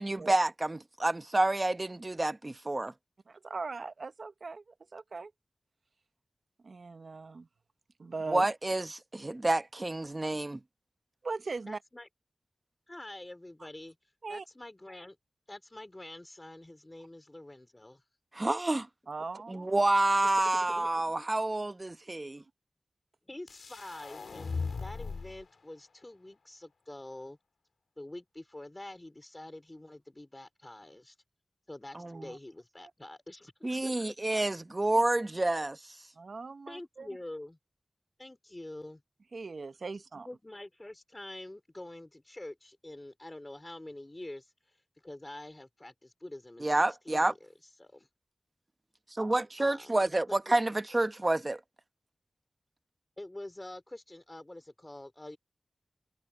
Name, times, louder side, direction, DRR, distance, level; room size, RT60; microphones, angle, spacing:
voice 1, 0.0-2.9 8.3-10.6 18.3-18.9 19.5-22.4 31.9-32.2 33.6-35.9 46.6-47.3 49.2-51.6, right 2 dB, 30° right, 1.0 m, -29 dB
voice 2, 3.3-5.3 6.6-7.5 8.0-8.5 11.2-11.8 14.2-14.4 19.1-19.8 32.1-32.4 32.8-32.9 34.9-35.0 36.2-37.1 39.3-40.3, right 4 dB, 70° right, 0.9 m, -40 dB
voice 3, 11.7-12.1 12.9-15.2 15.5-18.0 20.4-20.9 23.3-27.4 28.0-31.2 31.7-34.1 36.7-37.6 38.2-39.0 40.2-48.1 49.6-50.7 53.2-55.4, left 1 dB, 20° left, 3.1 m, -46 dB
sound 1, 23.5-25.4, left 4 dB, 90° left, 2.3 m, -38 dB
wide cardioid pair, 75°, 0 cm